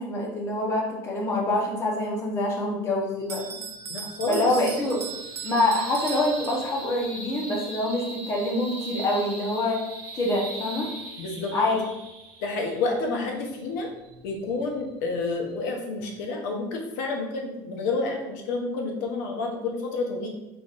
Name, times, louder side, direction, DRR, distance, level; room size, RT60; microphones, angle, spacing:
voice 1, 0.0-3.4 4.3-5.0 5.4-9.8 10.1-10.9 11.5-11.8, left 1 dB, 30° left, -2 dB, 0.9 m, -26 dB
sound 1, 3.0-15.7, right 2 dB, 60° right, 0.8 m, -41 dB
Bell, 3.3-7.0, right 6 dB, 30° right, 0.4 m, -38 dB
voice 2, 3.9-4.5 11.2-11.5 12.4-13.9 14.2-20.3, left 3 dB, 85° left, 2 dB, 0.8 m, -29 dB
3.9 x 3.3 x 2.4 m, 0.94 s
cardioid pair, 155°, 9 cm